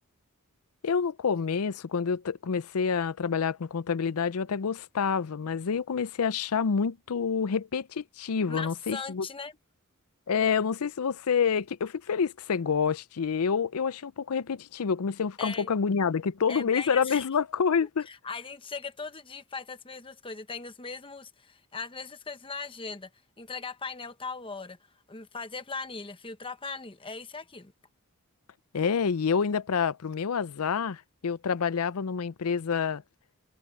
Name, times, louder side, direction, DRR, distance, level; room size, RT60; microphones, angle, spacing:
voice 1, 0.8-9.3 10.3-18.1 28.7-33.0, left 6 dB, 80° left, 0.5 m, -28 dB
voice 2, 8.5-9.5 15.4-15.7 16.5-17.3 18.1-23.1 23.4-24.8 25.1-27.7, left 4 dB, 25° left, 1.1 m, -39 dB
head